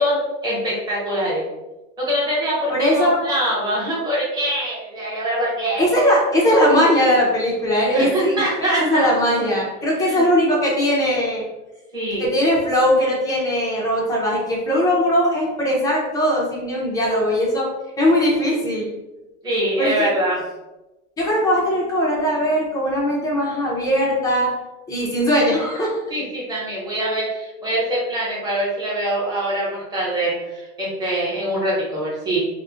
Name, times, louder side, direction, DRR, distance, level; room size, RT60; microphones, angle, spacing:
voice 1, 0.0-1.4 2.0-5.9 7.9-9.1 10.0-10.2 11.9-12.2 19.4-20.4 26.1-32.4, right 1 dB, 10° right, -7 dB, 0.9 m, -23 dB
voice 2, 2.7-3.2 5.8-8.4 8.8-11.4 12.2-17.7 18.0-18.9 19.8-20.1 21.2-24.5 24.9-26.0, equal, 10° left, -4 dB, 0.4 m, -19 dB
2.4 x 2.0 x 3.6 m, 1.0 s
supercardioid pair, 155°, 38 cm